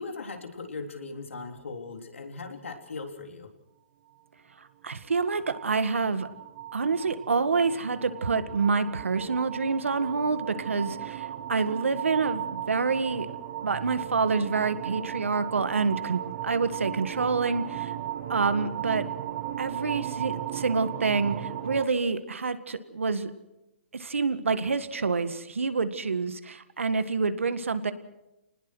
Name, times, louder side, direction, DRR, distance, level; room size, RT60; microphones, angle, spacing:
voice 1, 0.0-3.5, left 4 dB, 85° left, 4 dB, 3.7 m, -39 dB
voice 2, 4.8-6.3 6.7-13.3 13.6-17.9 18.3-19.0 19.6-23.3 24.0-27.9, right 4 dB, 90° right, 11 dB, 1.9 m, -27 dB
sound 1, 4.9-21.9, right 12 dB, 45° right, 1.9 m, -36 dB
27.5 x 19.5 x 6.4 m, 0.92 s
hypercardioid pair, 145°, 7 cm